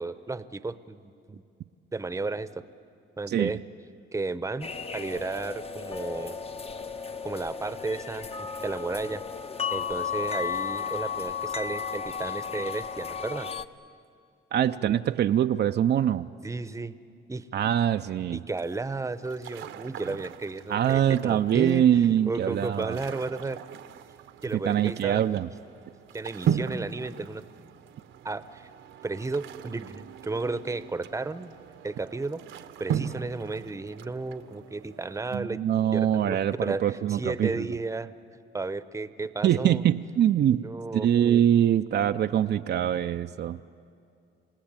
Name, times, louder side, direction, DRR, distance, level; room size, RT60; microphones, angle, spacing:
voice 1, 0.0-1.4 1.9-2.5 3.2-3.6 4.1-6.4 7.2-9.2 9.7-13.5 16.4-17.0 17.3-17.5 18.3-23.6 24.4-25.2 26.1-27.4 28.2-28.7 29.0-31.5 31.8-32.4 32.8-35.6 35.9-38.1 38.5-39.8 40.6-41.1, right 3 dB, 15° right, 14 dB, 0.8 m, -33 dB
sound 1, 4.6-13.7, left 6 dB, 30° left, 0.9 m, -34 dB
voice 2, 14.5-16.3 17.5-18.4 20.7-23.0 24.5-25.5 35.3-37.7 39.4-40.6 40.9-43.6, right 10 dB, 55° right, 8 dB, 0.5 m, -24 dB
sound 2, 18.5-35.4, right 8 dB, 75° right, 1.0 m, -38 dB
28.0 x 17.5 x 8.9 m, 2.5 s
cardioid pair, 90°, 20 cm